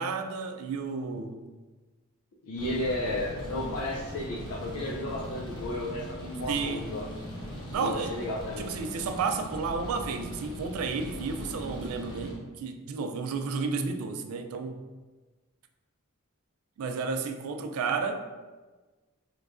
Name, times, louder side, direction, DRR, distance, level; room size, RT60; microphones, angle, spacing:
voice 1, 0.0-1.5 6.5-6.9 7.7-8.2 8.6-14.8 16.8-18.2, right 4 dB, 75° right, 0.3 m, -32 dB
voice 2, 2.4-7.1 7.8-8.7, left 1 dB, 75° left, 0.4 m, -33 dB
sound 1, 2.6-12.3, equal, 20° left, 0.8 m, -40 dB
3.5 x 3.1 x 2.4 m
head